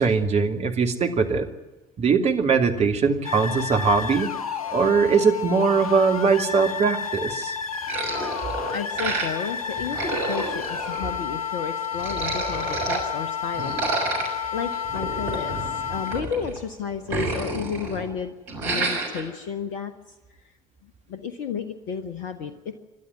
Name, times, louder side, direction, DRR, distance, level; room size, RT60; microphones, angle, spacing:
voice 1, 0.0-1.5 2.0-7.5, right 5 dB, 35° right, 3 dB, 2.8 m, -21 dB
sound 1, 3.2-16.2, left 7 dB, 80° left, 0.7 m, -31 dB
sound 2, 7.9-9.5 9.8-11.4 11.8-13.0 13.5-16.6 16.9-18.1 18.5-19.2, right 3 dB, 65° right, 6.0 m, -30 dB
voice 2, 8.7-13.8 14.5-20.2 20.8-22.8, left 7 dB, 55° left, 11 dB, 1.4 m, -32 dB
28.0 x 12.0 x 9.6 m, 1.1 s
figure-of-eight pair, 60°, 18 cm